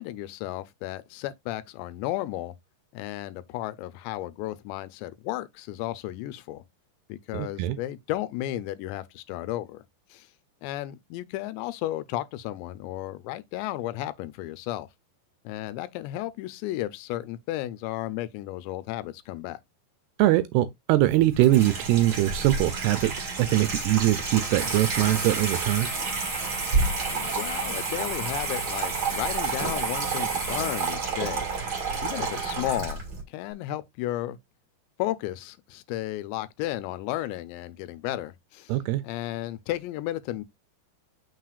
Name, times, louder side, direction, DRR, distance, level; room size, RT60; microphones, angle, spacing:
voice 1, 0.0-2.6 2.9-6.6 7.1-9.8 10.1-10.3 10.6-14.9 15.4-19.6 27.1-31.7 32.0-33.0 33.3-34.4 35.0-38.8 39.0-40.4, left 15 dB, 85° left, 2.9 m, -33 dB
voice 2, 7.3-7.8 20.2-25.9 38.7-39.0, right 15 dB, 80° right, 2.4 m, -22 dB
Water tap faucet / Sink (filling or washing), 21.0-33.2, right 4 dB, 40° right, 1.4 m, -29 dB
7.5 x 6.2 x 2.4 m
omnidirectional pair, 5.0 m